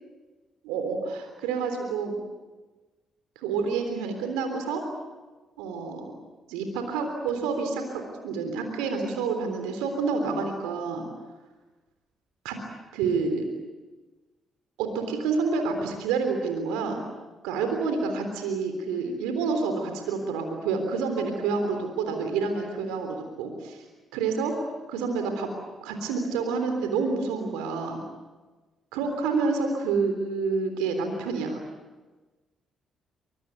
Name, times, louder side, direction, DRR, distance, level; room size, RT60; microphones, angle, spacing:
voice 1, 0.6-2.2 3.4-4.8 5.6-6.1 6.5-11.0 12.4-12.6 12.9-13.4 14.8-17.0 17.4-23.8 24.1-25.5 25.8-28.0 28.9-31.6, right 4 dB, 75° right, 5 dB, 3.6 m, -28 dB
24.0 x 23.5 x 9.4 m, 1.2 s
hypercardioid pair, 40°, 0 cm